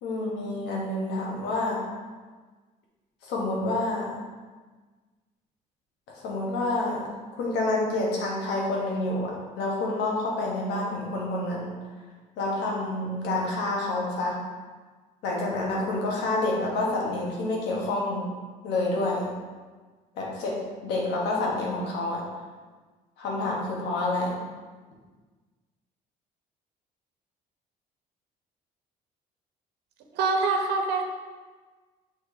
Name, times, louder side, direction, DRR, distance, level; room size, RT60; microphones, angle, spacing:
voice 1, 0.0-1.8 3.2-4.1 6.2-7.1 7.4-11.7 12.4-14.4 15.2-18.2 18.6-19.3 20.1-20.5 20.8-22.2 23.2-24.4, left 2 dB, 85° left, -2 dB, 1.5 m, -28 dB
voice 2, 30.1-31.0, right 4 dB, 85° right, 2 dB, 0.9 m, -24 dB
6.3 x 3.1 x 4.9 m, 1.4 s
cardioid pair, 110°, 17 cm